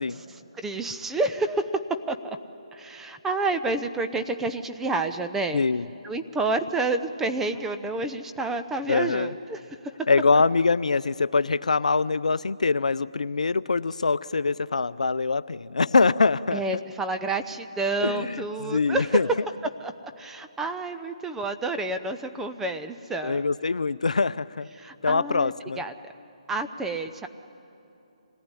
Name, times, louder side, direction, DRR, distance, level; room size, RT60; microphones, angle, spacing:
voice 1, 0.3-1.8 2.1-2.4 2.7-5.6 6.0-9.6 16.5-19.3 19.8-23.4 24.8-25.9 26.5-27.3, right 3 dB, 5° right, 8 dB, 0.7 m, -29 dB
voice 2, 5.5-5.9 8.9-9.3 10.1-16.8 18.0-19.3 23.2-24.7 25.0-25.8, left 4 dB, 85° left, 16 dB, 0.6 m, -24 dB
26.0 x 18.5 x 9.8 m, 2.9 s
hypercardioid pair, 155°, 4 cm